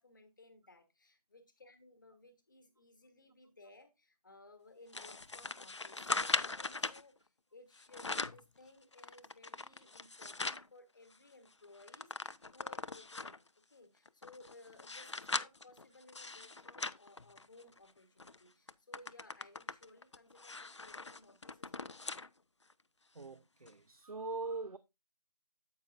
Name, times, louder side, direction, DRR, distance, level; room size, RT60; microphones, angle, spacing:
voice 1, 0.0-22.1, left 2 dB, 30° left, 1.2 m, -60 dB
sound 1, 4.9-7.0 7.7-8.4 8.9-10.6 11.1-11.2 11.4-13.5 14.0-17.8 18.2-18.4 18.7-22.3 22.7-22.8 23.7-23.8, left 3 dB, 50° left, 0.4 m, -40 dB
voice 2, 23.1-24.8, right 3 dB, 70° right, 0.7 m, -42 dB
9.2 x 8.1 x 2.5 m
figure-of-eight pair, 165°, 20 cm